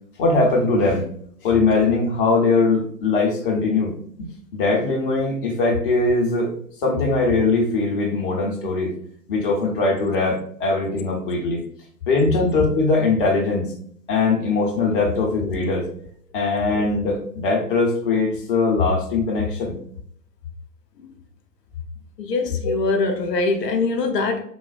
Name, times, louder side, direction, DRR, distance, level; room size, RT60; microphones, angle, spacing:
voice 1, 0.2-1.1 1.4-3.9 4.2-6.5 6.8-8.9 9.3-11.6 12.1-13.7 14.1-15.9 16.3-19.8, left 3 dB, 35° left, 0 dB, 0.6 m, -21 dB
voice 2, 22.2-24.4, left 3 dB, 70° left, 5 dB, 0.6 m, -22 dB
3.3 x 2.1 x 2.4 m, 0.62 s
figure-of-eight pair, 120°, 50 cm